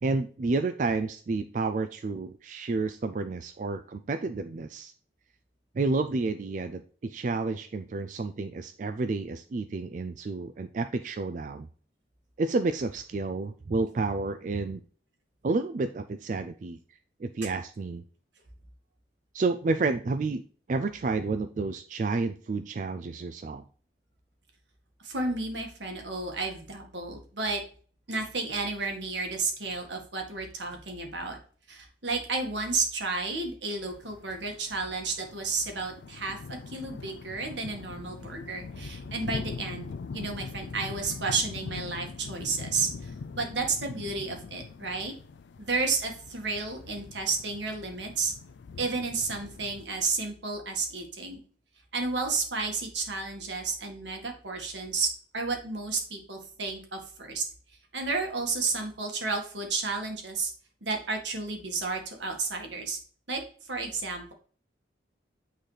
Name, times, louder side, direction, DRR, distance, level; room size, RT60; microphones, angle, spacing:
voice 1, 0.0-4.9 5.7-11.7 12.4-14.8 15.4-16.8 17.2-18.0 19.3-20.4 20.7-23.6, right 3 dB, 45° right, 9 dB, 0.3 m, -30 dB
voice 2, 25.0-27.6 28.1-31.4 31.7-45.1 45.6-48.3 48.8-51.4 51.9-55.1 55.3-57.4 57.9-60.5 60.8-63.0 63.3-64.3, right 4 dB, 80° right, 2 dB, 1.7 m, -32 dB
sound 1, 33.9-49.8, left 4 dB, 75° left, 0.4 m, -42 dB
8.8 x 4.0 x 3.2 m, 0.42 s
head